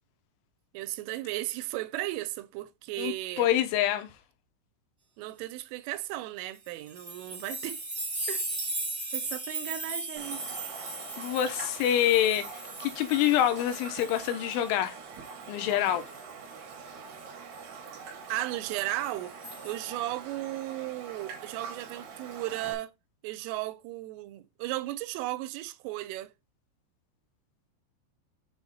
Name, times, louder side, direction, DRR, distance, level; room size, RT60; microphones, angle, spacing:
voice 1, 0.7-3.5 5.2-7.9 8.3-8.4 9.1-10.6 18.3-19.4 19.6-22.9 23.2-26.3, right 16 dB, 85° right, 3.1 m, -35 dB
voice 2, 3.0-4.1 11.2-12.5 12.8-15.0 15.5-16.1, left 11 dB, 80° left, 3.2 m, -26 dB
sound 1, 6.5-14.9 15.2-16.3 17.5-17.6 19.0-19.8, right 2 dB, 20° right, 0.9 m, -37 dB
Raindrop, 10.2-22.7, right 5 dB, 65° right, 3.0 m, -44 dB
7.2 x 3.5 x 4.0 m
omnidirectional pair, 5.7 m